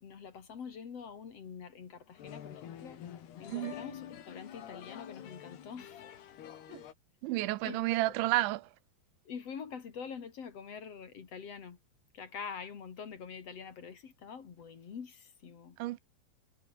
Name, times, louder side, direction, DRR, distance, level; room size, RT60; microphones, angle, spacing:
voice 1, 0.0-3.0 3.4-6.0 6.7-6.8 7.6-8.1 9.2-11.8 12.1-15.8, left 6 dB, 45° left, 2.6 m, -45 dB
sound 1, 2.1-6.9, left 10 dB, 65° left, 4.3 m, -47 dB
voice 2, 7.2-8.7 15.8-16.0, right 18 dB, 90° right, 3.2 m, -31 dB
omnidirectional pair, 5.3 m